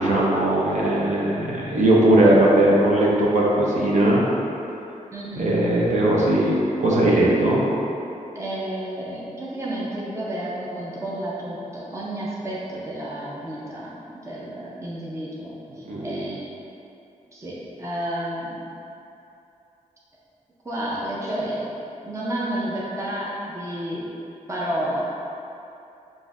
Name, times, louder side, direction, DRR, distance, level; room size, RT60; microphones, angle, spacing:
voice 1, 0.0-4.3 5.4-7.6 15.8-16.3, right 1 dB, 60° right, -5 dB, 0.8 m, -19 dB
voice 2, 5.1-5.5 8.3-16.5 17.3-18.6 20.6-24.0 24.5-25.0, right 1 dB, 20° right, -6 dB, 0.6 m, -31 dB
7.1 x 2.6 x 2.4 m, 2.8 s
wide cardioid pair, 135°, 14 cm